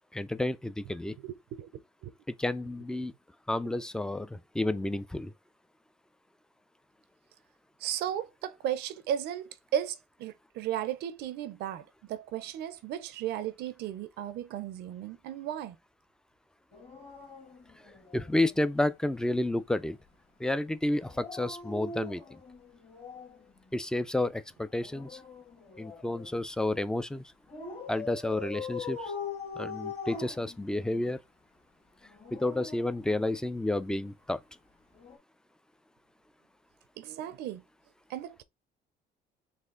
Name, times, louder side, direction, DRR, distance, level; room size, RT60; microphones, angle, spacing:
voice 1, 0.1-1.2 2.3-3.1 3.5-5.3 18.1-20.0 20.4-22.4 23.7-25.2 25.8-27.2 27.9-29.1 29.6-31.2 32.3-34.4, left 1 dB, 5° left, 0.3 m, -31 dB
voice 2, 1.2-1.7 2.0-2.1 7.8-15.8 37.0-37.6 38.1-38.4, right 10 dB, 75° right, 0.6 m, -35 dB
Dog, 16.7-18.6 21.0-23.4 24.7-26.4 27.5-31.1 32.0-33.7 35.0-35.2, left 4 dB, 35° left, 1.5 m, -42 dB
4.2 x 2.5 x 3.7 m
cardioid pair, 110°, 17 cm